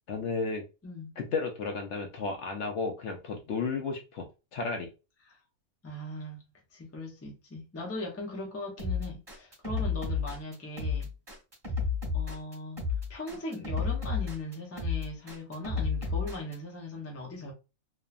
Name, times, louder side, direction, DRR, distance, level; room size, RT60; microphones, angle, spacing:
voice 1, 0.1-0.6 1.2-4.3 4.5-4.9, left 4 dB, 65° left, 0.7 m, -33 dB
voice 2, 5.8-6.4 6.7-11.1 12.1-12.8 13.1-17.5, left 2 dB, 20° left, 0.3 m, -39 dB
sound 1, 8.8-16.5, left 5 dB, 20° right, 1.0 m, -31 dB
3.0 x 2.1 x 2.3 m
omnidirectional pair, 1.5 m